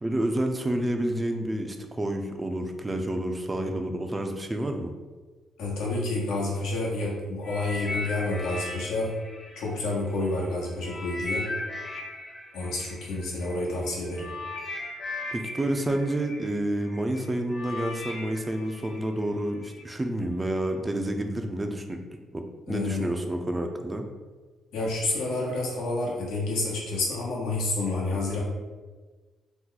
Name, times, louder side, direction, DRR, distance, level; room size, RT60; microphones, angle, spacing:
voice 1, 0.0-4.9 15.3-22.0 22.3-24.0, right 1 dB, 20° right, 4 dB, 0.4 m, -29 dB
voice 2, 5.6-9.1 9.6-11.5 12.5-14.3 22.7-23.1 24.7-28.4, left 2 dB, 85° left, -4 dB, 0.9 m, -29 dB
sound 1, 7.4-10.4 10.8-19.8 20.5-20.7, left 2 dB, 40° left, 0.8 m, -37 dB
2.9 x 2.1 x 3.8 m, 1.3 s
cardioid pair, 90°, 0 cm